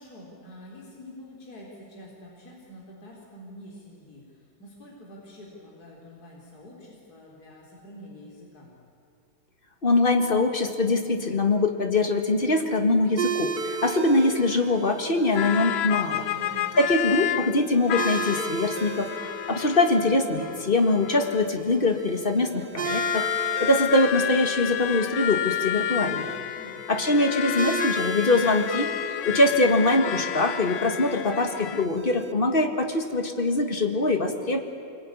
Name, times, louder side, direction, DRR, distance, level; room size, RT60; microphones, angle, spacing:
voice 1, 0.0-8.7 16.3-16.8 26.5-27.0, equal, 50° left, -3 dB, 4.4 m, -46 dB
voice 2, 9.8-16.3 16.8-19.1 19.5-23.3 23.6-26.3 26.9-28.9 29.3-34.6, left 2 dB, 25° left, 5 dB, 2.0 m, -23 dB
sound 1, 13.2-32.3, right 6 dB, 80° right, 0.4 m, -37 dB
sound 2, 15.4-17.6 17.9-21.7 22.8-31.9, left 11 dB, 75° left, 1.5 m, -30 dB
25.5 x 22.0 x 9.8 m, 2.7 s
omnidirectional pair, 2.2 m